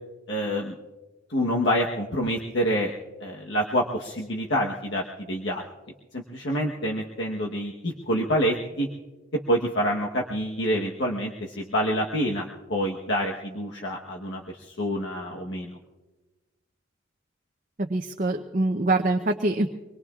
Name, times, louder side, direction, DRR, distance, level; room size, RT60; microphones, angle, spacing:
voice 1, 0.3-0.8 1.3-2.9 3.2-5.6 6.1-8.9 9.5-15.8, equal, 65° left, -1 dB, 1.2 m, -27 dB
voice 2, 17.8-19.7, right 2 dB, 40° right, 4 dB, 0.7 m, -24 dB
25.0 x 21.5 x 2.4 m, 1.2 s
head